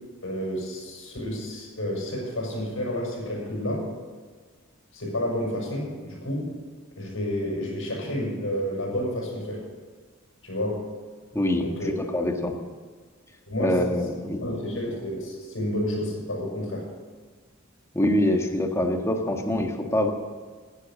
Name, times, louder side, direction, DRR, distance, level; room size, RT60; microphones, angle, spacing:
voice 1, 0.2-3.9 4.9-6.5 7.0-9.6 10.4-10.8 11.6-12.2 13.5-13.8 14.4-16.9, left 1 dB, 70° left, -1 dB, 6.6 m, -30 dB
voice 2, 11.3-12.6 13.6-14.4 17.9-20.1, left 1 dB, 15° left, 3 dB, 1.6 m, -25 dB
16.5 x 10.5 x 7.7 m, 1.5 s
head